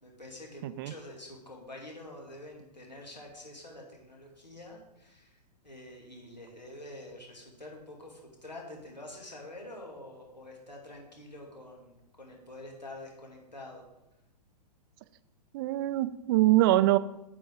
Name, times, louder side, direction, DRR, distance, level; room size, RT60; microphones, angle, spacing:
voice 1, 0.0-5.4 5.6-13.8, left 1 dB, 90° left, 0 dB, 2.5 m, -47 dB
voice 2, 0.6-0.9 15.5-17.0, right 16 dB, 35° right, 15 dB, 0.4 m, -24 dB
8.7 x 6.9 x 3.7 m, 0.92 s
figure-of-eight pair, 110°, 21 cm